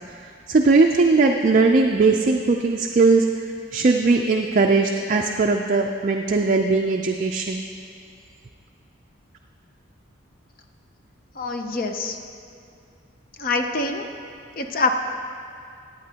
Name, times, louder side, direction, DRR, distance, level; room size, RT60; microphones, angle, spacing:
voice 1, 0.2-3.3 3.7-7.6, right 3 dB, 40° right, 2 dB, 0.4 m, -19 dB
voice 2, 11.4-12.2 13.4-14.1 14.6-14.9, left 3 dB, 45° left, 5 dB, 0.6 m, -25 dB
15.0 x 9.3 x 2.8 m, 2.4 s
head